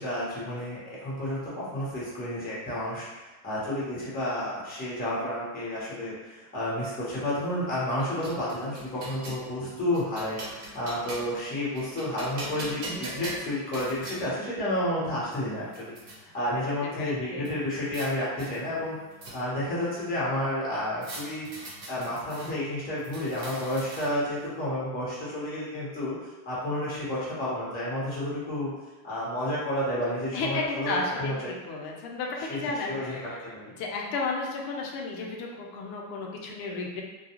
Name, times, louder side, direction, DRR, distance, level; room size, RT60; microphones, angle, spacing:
voice 1, 0.0-19.0 19.3-21.5 21.9-26.2 26.5-28.7 29.0-31.5 32.4-33.7, left 1 dB, 20° left, -7 dB, 1.1 m, -31 dB
sound 1, 7.7-9.4 9.9-11.4 11.8-14.2 15.0-15.1 15.3-16.2 17.4-18.1 18.4-19.7 21.0-22.5 23.0-24.3, right 1 dB, 50° right, 1.1 m, -41 dB
voice 2, 16.8-17.5 30.3-33.5 33.8-37.0, left 3 dB, 50° left, -1 dB, 0.7 m, -33 dB
2.3 x 2.3 x 2.9 m, 1.2 s
supercardioid pair, 120°, 44 cm